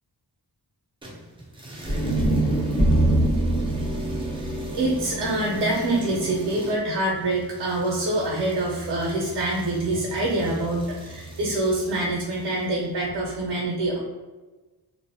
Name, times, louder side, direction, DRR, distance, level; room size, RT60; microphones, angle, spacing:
sound 1, 1.0-12.8, equal, 15° right, 0.4 m, -39 dB
sound 2, 1.8-6.1, right 1 dB, 25° left, 0.9 m, -24 dB
voice 1, 4.7-14.0, right 2 dB, 85° right, -2 dB, 0.6 m, -25 dB
2.6 x 2.0 x 2.6 m, 1.2 s
wide cardioid pair, 140°, 41 cm